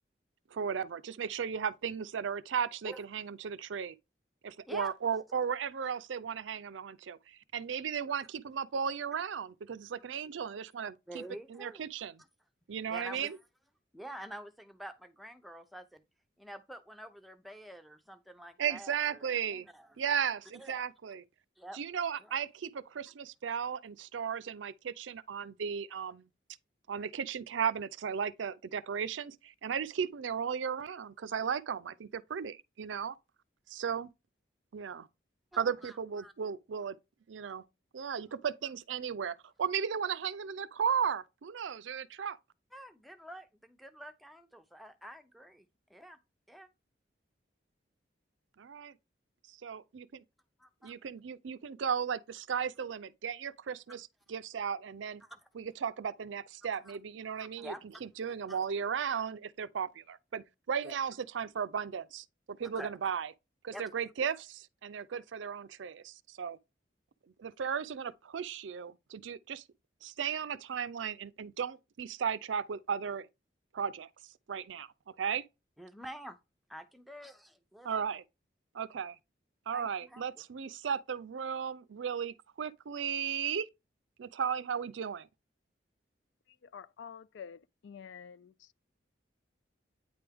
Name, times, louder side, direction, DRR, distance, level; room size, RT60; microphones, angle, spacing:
voice 1, 0.5-3.9 4.4-11.2 11.5-12.2 12.7-13.4 18.6-19.7 20.0-21.2 21.7-26.3 26.9-33.2 33.7-34.1 34.7-35.1 35.6-37.0 37.3-37.6 37.9-42.4 48.6-48.9 49.5-50.2 50.8-55.2 55.5-57.7 58.0-63.3 63.6-66.6 67.4-69.6 70.0-73.3 73.7-74.1 74.5-74.9 75.2-75.5 77.8-78.2 78.7-79.2 79.7-83.7 84.2-85.3, right 7 dB, 85° right, 0.4 m, -35 dB
voice 2, 11.1-11.8 12.9-13.4 13.9-16.0 16.4-19.9 20.6-20.9 21.6-21.8 22.2-22.3 35.5-36.3 42.7-46.2 46.5-46.7 50.6-50.9 53.9-54.0 55.2-55.4 56.9-57.0 57.3-57.9 58.5-58.6 60.8-61.0 62.6-62.9 63.7-63.9 75.8-76.4 76.7-78.2 79.7-80.4, equal, ahead, 0.6 m, -48 dB
voice 3, 86.7-88.5, left 7 dB, 80° left, 0.4 m, -48 dB
9.1 x 3.4 x 3.4 m
head